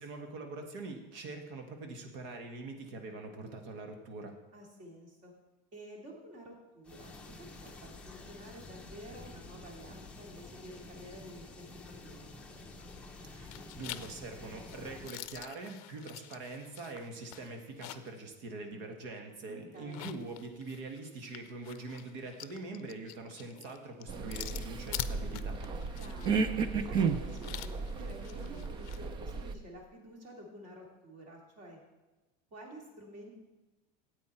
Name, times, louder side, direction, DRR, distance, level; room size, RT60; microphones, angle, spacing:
voice 1, 0.0-4.4 13.2-25.6, right 3 dB, 60° right, 4 dB, 1.6 m, -43 dB
voice 2, 4.5-5.3 5.7-12.4 19.5-20.1 26.0-26.4 26.8-31.8 32.5-33.3, equal, 40° right, 0 dB, 2.8 m, -50 dB
sound 1, 6.8-15.1, left 2 dB, 5° left, 0.8 m, -49 dB
sound 2, 12.8-13.2 13.5-18.2 18.6-18.7 19.8-29.0, left 15 dB, 60° left, 0.6 m, -46 dB
sound 3, 24.1-29.5, right 5 dB, 20° right, 0.5 m, -34 dB
14.0 x 8.7 x 4.4 m, 1.1 s
cardioid pair, 170°, 21 cm